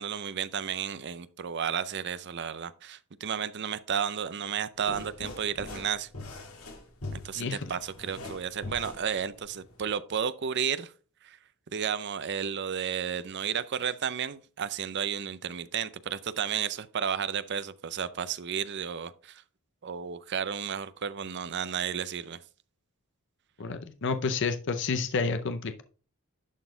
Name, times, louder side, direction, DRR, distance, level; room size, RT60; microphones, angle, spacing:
voice 1, 0.0-6.1 7.1-10.9 11.2-11.4 11.7-19.4 19.8-22.4, right 7 dB, 50° right, 0.5 m, -32 dB
sound 1, 4.7-9.9, left 2 dB, 75° left, 1.8 m, -42 dB
voice 2, 23.6-25.8, left 4 dB, 55° left, 0.6 m, -30 dB
11.0 x 4.2 x 3.8 m
head